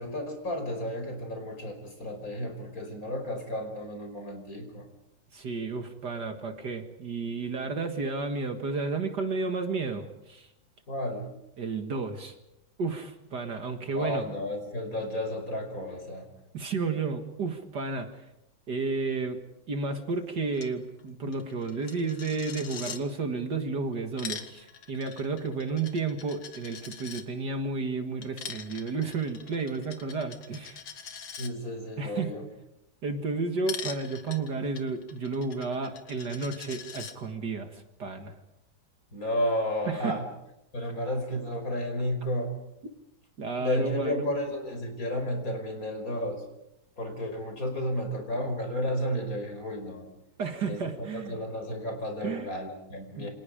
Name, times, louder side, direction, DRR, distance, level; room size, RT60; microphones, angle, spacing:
voice 1, 0.0-4.9 10.9-11.3 13.9-16.3 31.4-32.4 39.1-40.2 40.7-42.5 43.6-46.4 47.0-50.1 50.6-53.3, left 1 dB, 40° left, 4 dB, 5.6 m, -32 dB
voice 2, 5.3-10.5 11.6-12.3 12.8-14.2 16.5-18.2 18.7-19.4 19.7-30.8 32.0-32.3 33.0-38.4 39.9-40.2 43.4-44.3 50.4-51.4 52.2-52.5 53.1-53.3, right 4 dB, 55° right, 6 dB, 2.3 m, -32 dB
Coin (dropping), 20.5-20.7 21.0-21.1 21.3-23.0 23.9-27.2 28.2-31.5 33.7-37.1, left 6 dB, 65° left, 2.4 m, -42 dB
29.0 x 26.5 x 5.1 m, 0.85 s
omnidirectional pair, 2.3 m